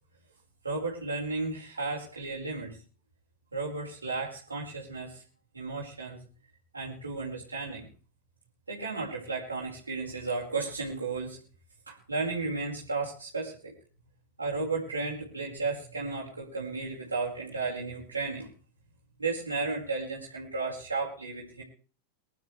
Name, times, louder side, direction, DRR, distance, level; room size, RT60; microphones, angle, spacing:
voice 1, 0.6-2.8 3.5-5.2 5.5-6.3 6.7-7.9 8.7-11.4 11.9-13.7 14.4-18.5 19.2-21.6, right 3 dB, 80° right, -3 dB, 5.0 m, -34 dB
24.5 x 12.0 x 3.3 m, 0.40 s
figure-of-eight pair, 90°, 0 cm